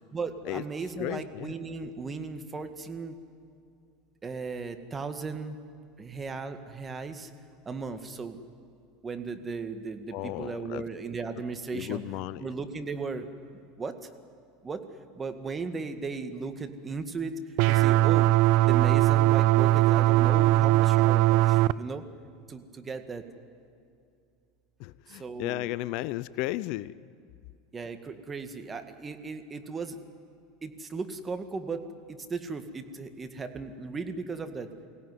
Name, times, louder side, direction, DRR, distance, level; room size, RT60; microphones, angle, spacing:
voice 1, 0.1-3.2 4.2-5.6 6.0-7.3 7.7-8.4 9.0-12.0 12.4-13.3 13.8-14.1 14.6-14.8 15.2-18.3 18.6-22.0 22.5-23.3 25.1-25.7 27.7-30.0 30.6-31.8 32.1-34.7, right 4 dB, 25° right, 7 dB, 1.9 m, -36 dB
voice 2, 1.0-1.5 10.1-10.8 11.7-12.5 24.8-26.9, left 17 dB, 60° left, 18 dB, 0.5 m, -34 dB
sound 1, 17.6-21.7, right 16 dB, 60° right, 0.5 m, -20 dB
23.5 x 17.0 x 9.6 m, 2.4 s
hypercardioid pair, 90°, 0 cm